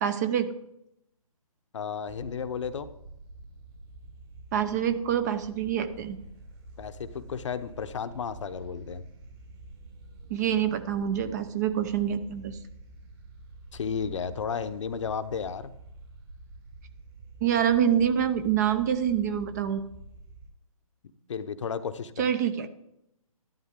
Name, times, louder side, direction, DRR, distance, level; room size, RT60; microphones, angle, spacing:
voice 1, 0.0-0.5 4.5-6.2 10.3-12.6 17.4-19.8 22.2-22.7, right 9 dB, 30° right, 11 dB, 0.7 m, -26 dB
voice 2, 1.7-2.9 6.8-9.0 13.7-15.7 21.3-22.3, left 6 dB, 55° left, 11 dB, 0.8 m, -33 dB
sound 1, 2.1-20.5, right 2 dB, 45° right, 5.7 m, -48 dB
13.0 x 11.5 x 3.7 m, 0.81 s
hypercardioid pair, 150°, 18 cm